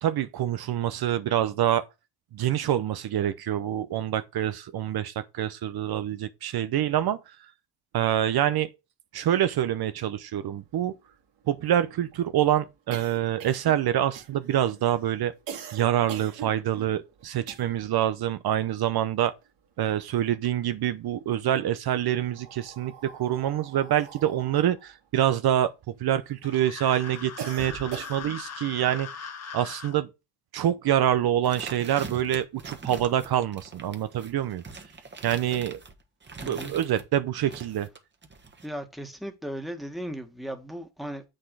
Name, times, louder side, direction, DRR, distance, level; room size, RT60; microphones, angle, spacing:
voice 1, 0.0-1.8 2.3-7.2 7.9-8.7 9.1-10.9 11.5-15.3 15.7-19.3 19.8-25.7 26.0-30.1 30.5-34.6 35.2-35.8 36.4-37.9, right 11 dB, 65° right, 0.7 m, -26 dB
sound 1, 9.8-9.9 10.1-10.2 10.5-18.0 18.3-19.9 20.2-21.1 21.9-26.4 26.8-28.5, right 7 dB, 80° right, 2.3 m, -43 dB
sound 2, 26.4-29.9, left 6 dB, 40° left, 1.2 m, -40 dB
sound 3, 31.4-37.1 37.5-38.7, right 4 dB, 25° right, 1.4 m, -43 dB
voice 2, 36.4-36.7 38.6-41.2, equal, ahead, 1.6 m, -36 dB
7.7 x 6.5 x 4.7 m
cardioid pair, 110°, 41 cm